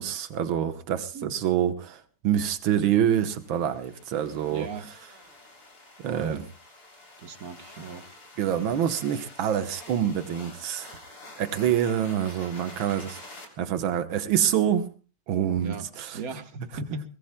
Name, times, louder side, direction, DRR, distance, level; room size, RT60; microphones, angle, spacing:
voice 1, 0.0-4.7 6.0-6.4 8.4-11.0 11.4-13.2 13.6-14.9 15.3-16.2, right 10 dB, 85° right, 1.9 m, -26 dB
sound 1, 3.0-13.4, left 2 dB, 50° left, 3.9 m, -48 dB
voice 2, 4.5-4.9 6.0-6.4 7.2-8.2 15.6-17.1, right 4 dB, 50° right, 1.5 m, -38 dB
23.0 x 20.5 x 2.2 m
omnidirectional pair, 2.1 m